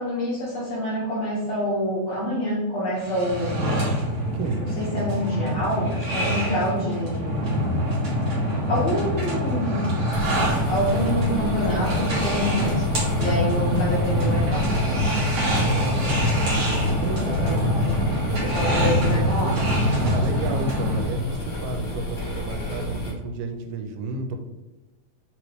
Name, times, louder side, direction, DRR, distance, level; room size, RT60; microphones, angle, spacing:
voice 1, 0.0-3.8 4.8-7.5 8.7-9.8 10.7-14.9 17.2-18.1 18.4-19.6, equal, 80° left, -7 dB, 1.5 m, -27 dB
sound 1, 3.0-21.0, equal, 55° right, 1.5 m, -24 dB
sound 2, 10.1-23.1, left 2 dB, 45° left, 1.4 m, -32 dB
voice 2, 15.6-17.6 18.3-19.7 20.0-24.4, right 3 dB, 85° right, 5 dB, 2.6 m, -31 dB
5.5 x 3.1 x 3.0 m, 1.1 s
omnidirectional pair, 4.4 m